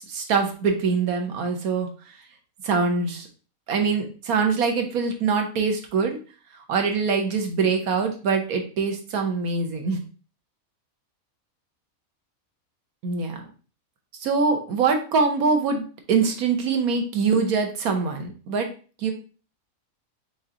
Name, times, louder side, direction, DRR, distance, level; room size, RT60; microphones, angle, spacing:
voice 1, 0.0-1.9 2.6-3.3 3.7-6.2 6.7-10.0 13.0-13.5 14.2-18.7 19.0-19.1, right 5 dB, 85° right, 4 dB, 1.3 m, -24 dB
5.2 x 3.6 x 2.8 m, 0.37 s
omnidirectional pair, 1.5 m